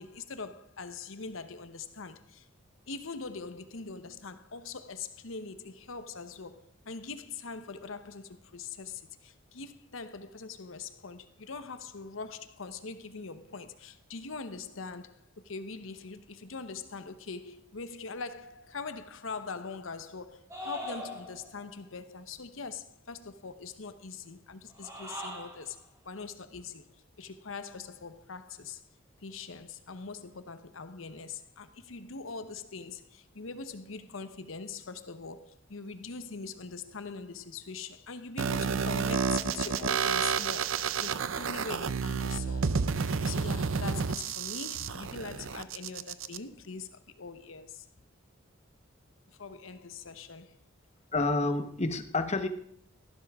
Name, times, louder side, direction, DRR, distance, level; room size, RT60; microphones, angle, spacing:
voice 1, 0.0-2.5 2.9-26.9 27.2-28.8 29.2-47.9 49.4-50.6, left 4 dB, 75° left, 0.9 m, -42 dB
sound 1, 20.5-21.6 24.7-25.7, equal, 15° right, 5.2 m, -41 dB
sound 2, 38.4-46.4, right 5 dB, 75° right, 0.6 m, -30 dB
voice 2, 51.1-52.5, left 2 dB, 35° left, 1.1 m, -29 dB
14.0 x 12.0 x 3.6 m
head